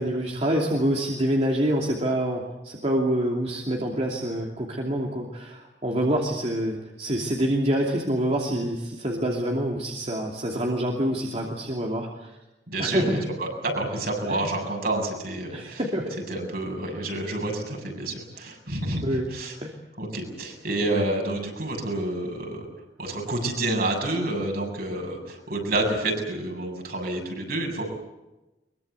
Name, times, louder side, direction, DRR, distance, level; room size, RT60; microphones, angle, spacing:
voice 1, 0.0-12.4 12.8-13.3 14.3-14.5 15.5-16.2 16.8-17.0 19.0-19.3 19.6-19.7 20.9-21.0, right 1 dB, 40° right, 0 dB, 2.8 m, -26 dB
voice 2, 12.7-15.8 16.3-19.5 20.0-22.7 23.0-27.9, right 2 dB, 60° right, 2 dB, 7.4 m, -29 dB
23.5 x 23.0 x 8.2 m, 1.0 s
head